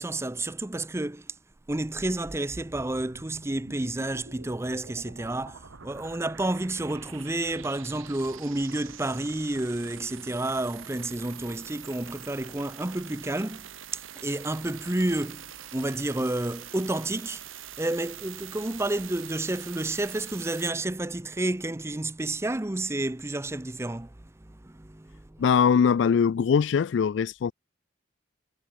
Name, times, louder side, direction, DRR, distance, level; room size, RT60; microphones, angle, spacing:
voice 1, 0.0-1.3 1.7-13.7 13.9-17.4 17.8-25.5, right 2 dB, 15° right, 0.6 m, -30 dB
sound 1, 1.5-20.7, right 9 dB, 85° right, 1.2 m, -45 dB
voice 2, 25.4-27.5, left 6 dB, 65° left, 0.3 m, -22 dB
head